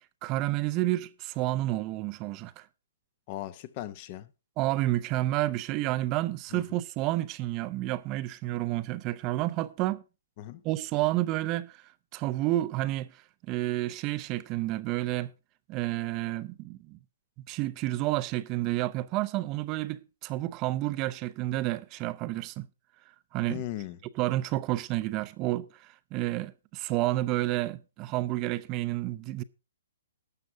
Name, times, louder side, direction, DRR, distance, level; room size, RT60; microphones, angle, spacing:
voice 1, 0.2-2.7 4.6-10.0 10.6-11.8 12.1-15.3 15.7-17.0 17.5-22.7 23.3-23.6 24.2-29.4, right 16 dB, 30° right, 0.5 m, -30 dB
voice 2, 3.3-4.3 6.5-6.6 10.4-10.6 23.5-24.0, left 14 dB, 35° left, 0.8 m, -37 dB
12.5 x 6.8 x 4.7 m
hypercardioid pair, 145°, 0 cm